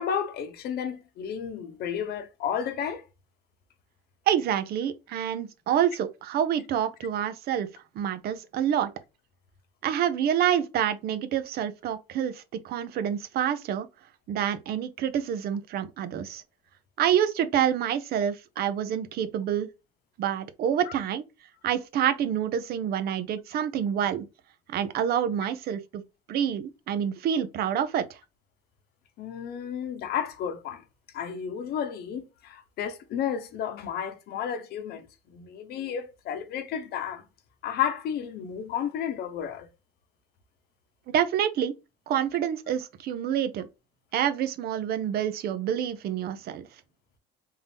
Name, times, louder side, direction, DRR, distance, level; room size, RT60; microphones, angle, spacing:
voice 1, 0.0-3.0 20.9-21.0 29.2-30.8 31.1-37.3 37.6-39.7, left 8 dB, 70° left, 0.8 m, -32 dB
voice 2, 4.3-8.9 9.8-13.9 14.3-16.4 17.0-19.7 20.2-21.2 21.6-24.3 24.7-26.0 26.3-28.2 41.1-41.7 42.1-43.7 44.1-46.7, right 9 dB, 65° right, 0.6 m, -27 dB
3.7 x 2.7 x 3.4 m
cardioid pair, 110°, 17 cm